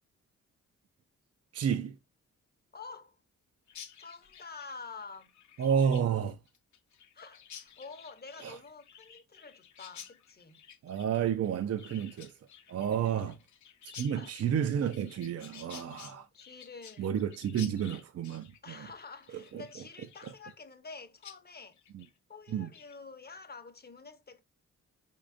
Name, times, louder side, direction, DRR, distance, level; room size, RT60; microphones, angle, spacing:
voice 1, 1.5-2.0 5.6-6.4 8.4-8.6 10.8-12.3 12.7-13.3 14.0-16.3 17.0-18.9 19.3-19.6 21.9-22.0 22.5-22.7, right 8 dB, 50° right, 0.5 m, -31 dB
voice 2, 2.7-3.2 4.0-5.3 7.1-10.6 13.1-13.4 14.1-14.5 15.8-17.1 18.6-21.8 22.3-24.4, left 4 dB, 30° left, 0.8 m, -48 dB
Chirp tweet, 3.7-20.9 21.2-21.4 21.7-22.1 22.5-23.0, left 8 dB, 65° left, 0.7 m, -52 dB
4.7 x 3.7 x 2.5 m
cardioid pair, 70°, 31 cm